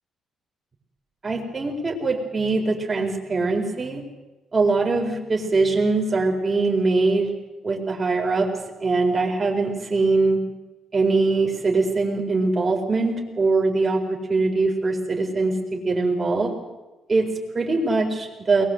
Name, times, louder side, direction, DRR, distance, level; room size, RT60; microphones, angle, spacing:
voice 1, 1.2-4.0 4.5-7.3 7.6-8.5 8.8-10.4 10.9-16.5 17.1-18.6, right 3 dB, 25° right, 1 dB, 4.3 m, -22 dB
23.5 x 21.0 x 7.8 m, 1.1 s
cardioid pair, 135°, 0 cm